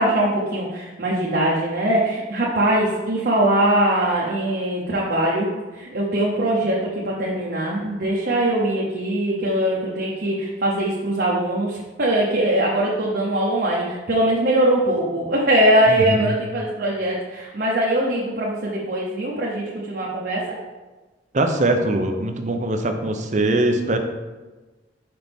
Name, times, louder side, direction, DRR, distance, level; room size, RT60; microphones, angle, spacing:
voice 1, 0.0-20.6, right 1 dB, 55° right, -4 dB, 0.9 m, -21 dB
voice 2, 15.9-16.3 21.3-24.0, right 2 dB, 40° right, 5 dB, 0.6 m, -22 dB
6.0 x 5.5 x 3.5 m, 1.2 s
head